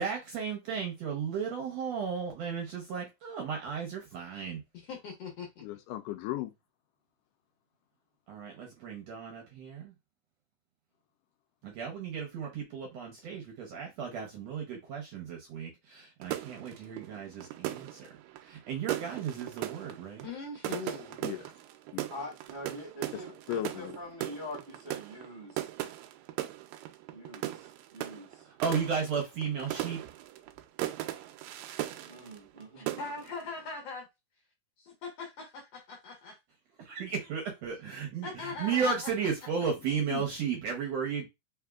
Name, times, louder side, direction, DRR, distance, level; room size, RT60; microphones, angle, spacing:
voice 1, 0.0-4.6 8.3-9.9 11.6-18.1 18.4-20.2 28.6-30.0 36.8-41.3, right 6 dB, 65° right, 1.7 m, -34 dB
voice 2, 4.7-5.6 20.2-21.2 32.8-34.1 34.8-36.4 38.2-39.1, left 4 dB, 60° left, 1.8 m, -41 dB
voice 3, 5.6-6.5 21.2-21.5 21.9-22.0 23.1-23.2 23.5-24.0 40.1-40.2, left 14 dB, 80° left, 2.0 m, -36 dB
sound 1, 16.2-32.6 32.9-33.4, right 14 dB, 85° right, 2.3 m, -38 dB
voice 4, 22.1-25.7 27.1-27.5 27.9-28.5 32.0-32.9, left 1 dB, 30° right, 1.1 m, -44 dB
4.9 x 3.6 x 2.3 m
omnidirectional pair, 3.9 m